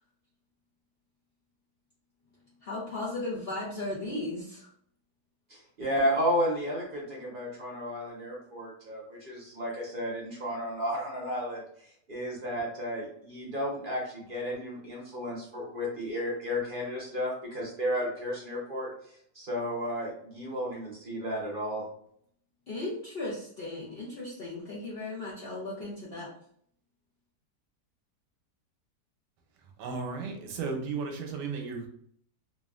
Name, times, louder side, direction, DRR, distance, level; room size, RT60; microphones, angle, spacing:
voice 1, 2.6-4.7 22.7-26.3, left 2 dB, 80° left, -7 dB, 0.5 m, -36 dB
voice 2, 5.8-11.6 12.1-18.9 19.3-21.8, equal, 50° right, -3 dB, 0.6 m, -32 dB
voice 3, 29.8-31.9, right 4 dB, 80° right, 3 dB, 1.2 m, -34 dB
3.1 x 2.4 x 2.3 m, 0.64 s
omnidirectional pair, 1.8 m